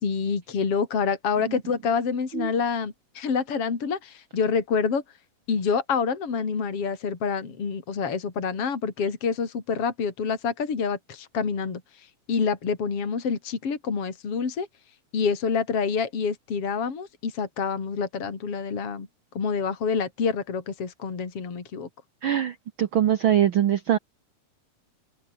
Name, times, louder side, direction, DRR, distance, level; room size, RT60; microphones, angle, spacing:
voice 1, 0.0-5.0 5.5-14.7 15.1-19.1 19.3-21.9, left 5 dB, 45° left, 4.3 m, -27 dB
voice 2, 22.2-24.0, right 10 dB, 90° right, 1.1 m, -23 dB
open air
omnidirectional pair, 3.7 m